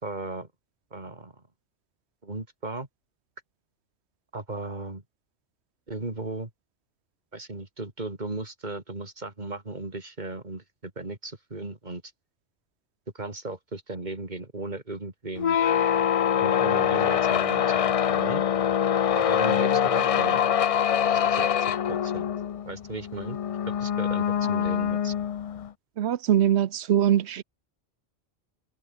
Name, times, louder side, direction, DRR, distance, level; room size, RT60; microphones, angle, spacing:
voice 1, 0.0-0.5 0.9-1.4 2.2-2.9 4.3-5.0 5.9-6.5 7.3-12.0 13.1-15.6 16.4-17.6 18.1-18.4 19.2-20.4 21.3-22.3 22.6-23.4 23.8-25.1, right 2 dB, 45° right, 3.6 m, -36 dB
sound 1, 15.3-25.7, left 9 dB, 55° left, 0.4 m, -24 dB
voice 2, 26.0-27.4, right 10 dB, 80° right, 1.0 m, -22 dB
omnidirectional pair, 1.1 m